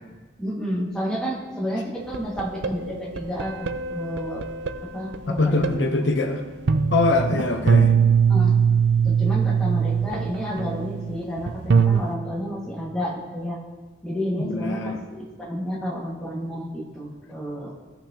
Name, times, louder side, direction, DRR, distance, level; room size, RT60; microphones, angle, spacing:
voice 1, 0.4-4.4 4.9-5.7 8.3-8.5 9.0-13.6 14.0-17.7, equal, 5° left, -6 dB, 1.8 m, -30 dB
sound 1, 2.0-4.7 5.1-6.2 6.7-12.1, right 6 dB, 70° right, 0.5 m, -22 dB
voice 2, 5.3-6.4 6.9-7.9 14.3-15.0, left 2 dB, 90° left, 4 dB, 0.8 m, -23 dB
16.0 x 5.8 x 2.9 m, 1.3 s
head